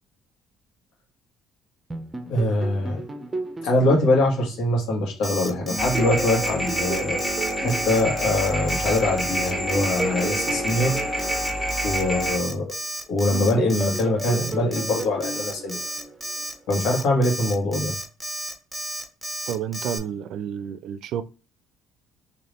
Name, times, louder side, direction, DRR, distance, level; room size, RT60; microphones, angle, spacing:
sound 1, 1.9-5.2 5.7-9.0 9.5-12.8 13.3-16.6, right 2 dB, 20° right, 0.7 m, -35 dB
voice 1, 2.3-3.0 3.6-7.2 7.6-11.0 11.8-12.6 13.1-15.8 16.7-17.9, left 1 dB, 75° left, 1.7 m, -23 dB
Alarm, 5.2-20.0, equal, 5° right, 1.0 m, -32 dB
sound 2, 5.8-12.4, equal, 15° left, 1.6 m, -27 dB
voice 2, 19.5-21.2, right 9 dB, 70° right, 0.4 m, -30 dB
3.3 x 3.0 x 4.1 m
supercardioid pair, 85°, 0 cm